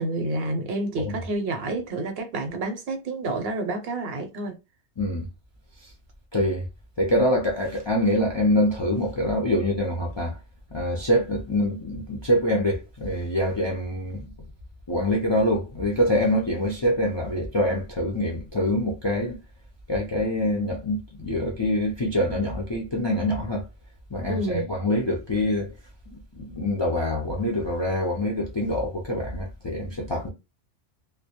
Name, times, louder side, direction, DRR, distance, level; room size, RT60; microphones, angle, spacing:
voice 1, 0.0-4.6 24.3-24.6, right 2 dB, 65° right, 0.8 m, -29 dB
voice 2, 5.0-5.3 6.3-6.6 7.0-10.4 10.7-14.3 14.9-19.4 19.9-23.6 24.1-25.7 26.1-30.3, left 1 dB, 40° left, 0.4 m, -25 dB
2.2 x 2.1 x 2.8 m
omnidirectional pair, 1.2 m